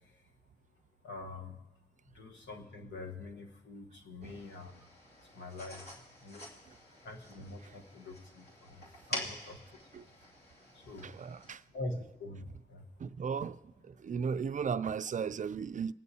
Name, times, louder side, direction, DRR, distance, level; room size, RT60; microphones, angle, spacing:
voice 1, 1.0-1.6 2.1-4.9 5.3-5.8 6.2-6.5 7.0-9.6 10.7-11.1 11.7-12.8, left 2 dB, 90° left, 1.2 m, -44 dB
sound 1, 4.2-11.5, left 1 dB, 60° left, 2.6 m, -47 dB
voice 2, 11.0-11.6 13.0-13.6 13.8-15.9, right 6 dB, 45° right, 0.4 m, -36 dB
22.5 x 9.2 x 2.8 m
cardioid pair, 55°, 19 cm